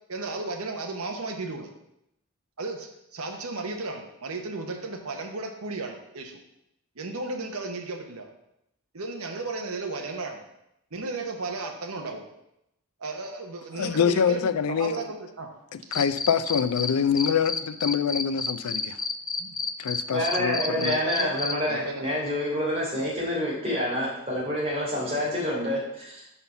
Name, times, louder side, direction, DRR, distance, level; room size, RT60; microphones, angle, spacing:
voice 1, 0.1-1.7 2.6-6.4 7.0-8.3 8.9-10.4 10.9-12.2 13.0-15.5 19.4-19.6 20.2-22.0, right 3 dB, 75° right, 3 dB, 1.1 m, -34 dB
voice 2, 13.8-15.0 15.7-19.0 19.8-20.9, left 7 dB, 85° left, 13 dB, 0.4 m, -25 dB
Cricket, 15.9-16.9 17.2-21.5, left 4 dB, 20° left, 0.4 m, -29 dB
voice 3, 20.1-26.4, left 1 dB, 30° right, -6 dB, 3.0 m, -28 dB
5.6 x 5.5 x 5.8 m, 0.84 s
head